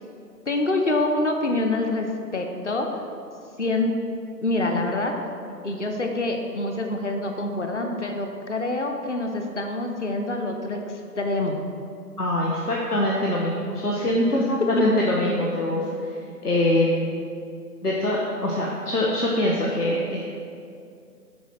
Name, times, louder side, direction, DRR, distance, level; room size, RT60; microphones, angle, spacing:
voice 1, 0.5-2.1 2.3-2.9 3.6-3.9 4.4-5.1 5.6-11.6 14.0-14.1, left 2 dB, 45° left, 3 dB, 0.9 m, -26 dB
voice 2, 12.2-17.1 17.8-20.2, left 1 dB, 70° left, -3 dB, 1.4 m, -23 dB
10.0 x 4.3 x 5.9 m, 2.4 s
figure-of-eight pair, 145°, 48 cm